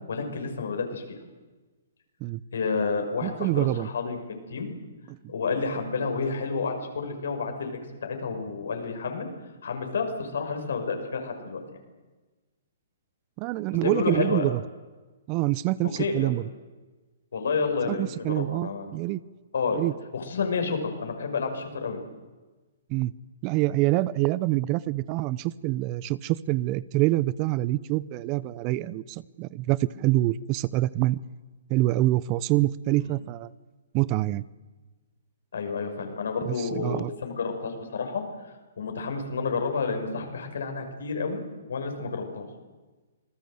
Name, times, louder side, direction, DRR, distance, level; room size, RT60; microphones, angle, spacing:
voice 1, 0.1-1.2 2.5-4.7 5.3-9.3 9.6-11.6 13.8-14.5 16.0-16.3 17.3-18.9 19.5-19.8 20.1-22.0 33.0-33.1 35.5-41.4 41.7-42.5, left 4 dB, 70° left, 4 dB, 6.1 m, -30 dB
voice 2, 3.2-3.9 5.1-5.2 13.4-14.6 15.3-16.4 17.9-19.2 19.7-19.9 22.9-23.1 23.4-31.2 31.7-33.5 33.9-34.4 36.5-37.1, right 17 dB, 35° right, 20 dB, 0.7 m, -26 dB
27.0 x 19.5 x 8.0 m, 1.3 s
hypercardioid pair, 130°, 0 cm